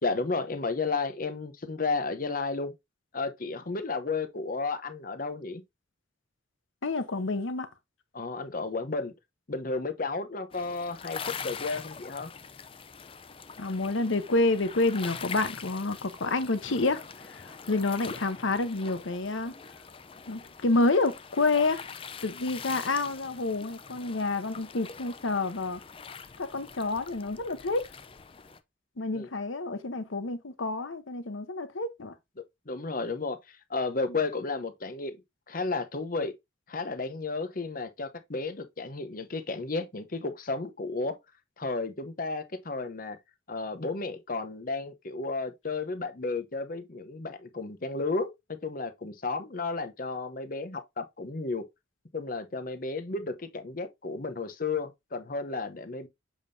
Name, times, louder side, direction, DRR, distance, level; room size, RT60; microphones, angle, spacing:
voice 1, 0.0-2.7 3.1-5.6 8.1-9.1 9.5-12.3 29.1-29.3 32.7-35.2 35.5-36.3 36.7-41.2 41.6-43.2 43.5-51.6 52.1-56.1, left 3 dB, 45° left, 0.8 m, -33 dB
voice 2, 6.8-7.7 13.6-19.5 20.3-21.9 22.2-25.8 26.4-27.8 29.0-32.1, left 3 dB, 75° left, 0.9 m, -28 dB
sound 1, 10.5-28.6, left 6 dB, 25° left, 0.4 m, -43 dB
7.3 x 5.2 x 2.7 m
head